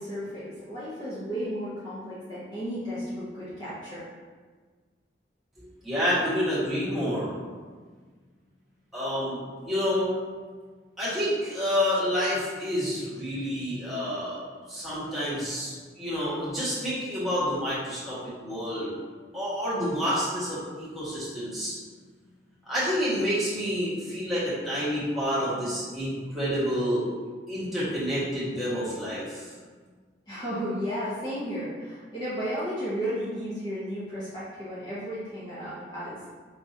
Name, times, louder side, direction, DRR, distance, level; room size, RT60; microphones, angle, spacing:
voice 1, 0.0-4.0 30.3-36.2, equal, 25° left, -11 dB, 0.8 m, -33 dB
voice 2, 5.8-7.3 8.9-10.1 11.0-14.4 14.7-18.9 19.3-21.7 22.7-27.1 27.5-29.5, equal, ahead, -12 dB, 1.4 m, -28 dB
4.8 x 2.9 x 2.7 m, 1.5 s
head